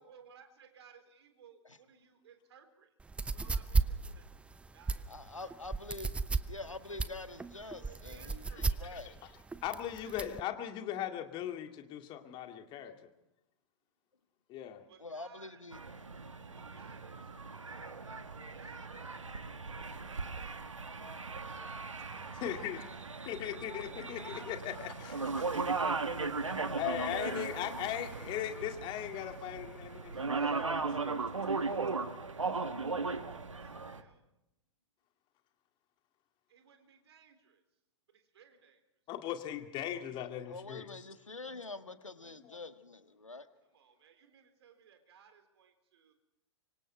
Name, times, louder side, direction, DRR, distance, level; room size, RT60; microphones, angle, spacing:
voice 1, 0.0-2.9 3.2-4.3 4.7-5.5 7.8-9.3 10.0-10.2 14.9-15.6 16.5-19.2 19.9-21.2 21.6-22.5 23.2-23.3 24.7-26.1 26.5-26.9 28.1-28.2 30.1-31.9 32.3-34.3 36.5-37.6 38.1-38.8 43.7-46.1, right 7 dB, 55° right, 7 dB, 3.8 m, -60 dB
sound 1, 3.0-10.4, right 3 dB, 5° right, 0.7 m, -34 dB
voice 2, 5.1-6.1 6.4-9.1 15.0-15.8 26.4-27.9 40.5-43.5, left 3 dB, 85° left, 10 dB, 1.6 m, -46 dB
voice 3, 9.6-13.1 14.5-14.8 22.3-22.9 23.3-25.3 26.8-31.2 39.1-40.8 42.5-42.6, left 11 dB, 30° left, 6 dB, 2.2 m, -39 dB
sound 2, 15.7-34.0, right 4 dB, 80° right, 1.5 m, -37 dB
25.5 x 24.5 x 4.5 m, 0.89 s
figure-of-eight pair, 105°, 16 cm